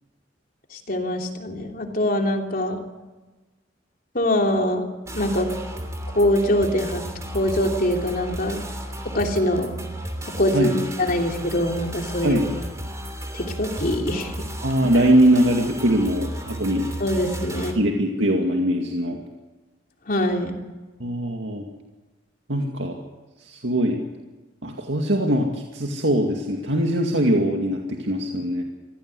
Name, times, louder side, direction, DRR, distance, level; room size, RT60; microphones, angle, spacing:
voice 1, 0.7-2.8 4.1-4.9 5.1-5.5 6.1-7.0 7.3-8.6 9.1-9.7 10.4-12.4 13.3-14.3 17.0-17.9 20.1-20.6, left 1 dB, 50° left, 2 dB, 3.2 m, -23 dB
sound 1, 5.1-17.7, right 1 dB, 15° right, 3.2 m, -34 dB
voice 2, 12.2-12.5 14.6-16.9 17.5-19.2 21.0-21.7 22.5-23.0 23.4-24.0 24.6-28.6, right 1 dB, 75° right, 1 dB, 2.2 m, -22 dB
24.5 x 16.0 x 8.3 m, 1.2 s
head